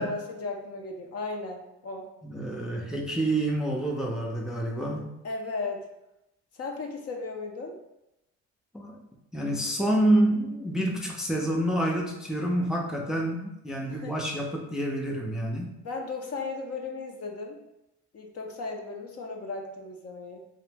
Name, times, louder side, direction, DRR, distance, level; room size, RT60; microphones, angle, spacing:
voice 1, 0.0-2.1 5.2-5.8 6.5-7.7 13.8-14.2 15.8-17.6 18.1-20.4, left 3 dB, 55° left, 2 dB, 0.6 m, -36 dB
voice 2, 2.2-5.1 8.7-9.0 9.3-15.7, right 1 dB, ahead, -1 dB, 0.4 m, -28 dB
2.8 x 2.0 x 3.3 m, 0.87 s
cardioid pair, 90°, 30 cm